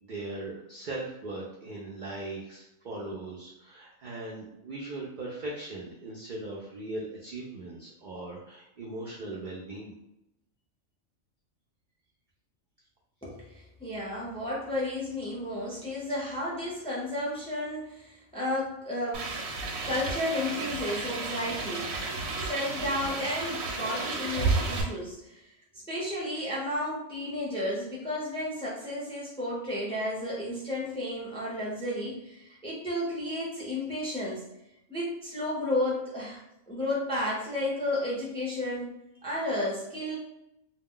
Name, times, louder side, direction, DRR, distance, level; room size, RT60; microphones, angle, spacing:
voice 1, 0.0-9.9, right 2 dB, 65° right, -4 dB, 0.4 m, -39 dB
voice 2, 13.2-19.3 19.9-21.9 22.4-25.5 25.9-34.4 34.9-36.4 36.7-40.1, left 1 dB, 5° left, -5 dB, 0.5 m, -32 dB
sound 1, 19.1-24.8, right 3 dB, 85° right, 1.0 m, -32 dB
2.3 x 2.1 x 3.6 m, 0.86 s
omnidirectional pair, 1.4 m